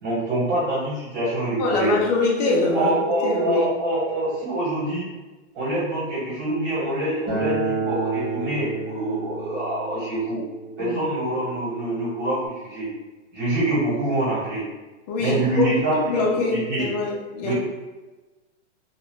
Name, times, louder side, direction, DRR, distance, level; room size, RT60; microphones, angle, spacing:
voice 1, 0.0-1.9 2.7-5.0 5.5-10.4 10.8-12.9 13.3-14.6 15.2-16.2 16.5-16.9 17.4-17.5, right 1 dB, 40° right, -6 dB, 1.4 m, -25 dB
voice 2, 1.6-3.7 10.8-11.0 15.1-17.5, left 3 dB, 35° left, -1 dB, 0.6 m, -24 dB
Acoustic guitar, 7.3-12.5, right 4 dB, 10° right, 0.3 m, -31 dB
2.4 x 2.4 x 3.5 m, 1.2 s
hypercardioid pair, 150°, 37 cm